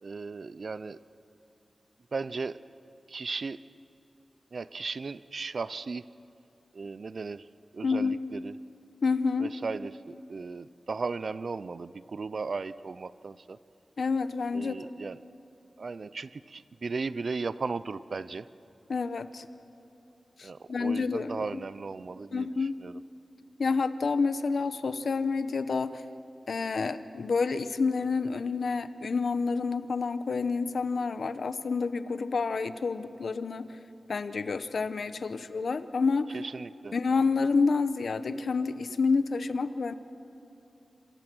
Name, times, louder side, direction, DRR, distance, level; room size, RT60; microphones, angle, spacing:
voice 1, 0.0-1.0 2.1-2.6 3.1-3.6 4.5-6.0 6.7-7.5 7.7-8.5 9.4-13.6 14.5-15.2 15.8-18.5 20.4-23.0 36.3-37.0, right 4 dB, 60° right, 16 dB, 0.6 m, -36 dB
voice 2, 7.8-8.2 9.0-9.5 14.0-14.8 18.9-19.5 20.4-21.6 22.3-22.8 23.6-26.0 26.5-33.8 34.1-36.4 36.9-39.9, left 4 dB, 75° left, 11 dB, 0.9 m, -29 dB
28.0 x 27.0 x 6.2 m, 2.7 s
wide cardioid pair, 90°, 0 cm